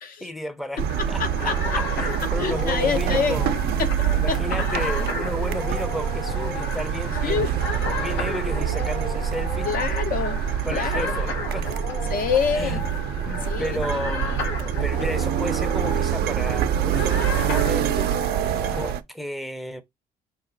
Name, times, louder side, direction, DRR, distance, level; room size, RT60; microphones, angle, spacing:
voice 1, 0.2-3.6 4.1-7.6 8.0-9.7 10.7-11.7 12.5-12.8 13.2-14.4 14.8-18.1 18.4-19.8, equal, ahead, 0.6 m, -33 dB
sound 1, 0.8-19.0, right 9 dB, 70° right, 0.6 m, -26 dB
sound 2, 0.9-18.9, left 3 dB, 80° left, 1.0 m, -33 dB
voice 2, 1.2-1.8 2.2-3.4 3.8-4.4 7.2-7.5 9.6-10.4 10.7-11.1 12.1-12.8 13.5-13.8, left 6 dB, 60° left, 0.7 m, -26 dB
5.7 x 2.1 x 3.9 m
cardioid pair, 110°, 17 cm